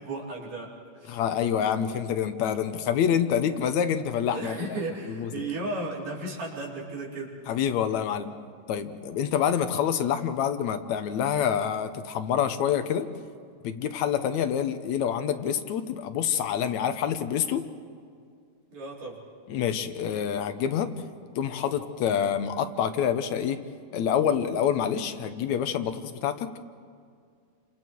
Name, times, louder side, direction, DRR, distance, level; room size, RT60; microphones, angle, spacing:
voice 1, 0.0-1.2 4.3-7.3 18.7-19.2, right 2 dB, 85° right, -4 dB, 5.8 m, -35 dB
voice 2, 1.1-4.8 5.2-5.5 7.5-8.3 8.7-13.1 13.6-17.6 19.5-20.9 21.4-23.6 23.9-26.5, left 8 dB, 70° left, 9 dB, 2.3 m, -27 dB
29.5 x 26.5 x 4.7 m, 2.2 s
omnidirectional pair, 3.6 m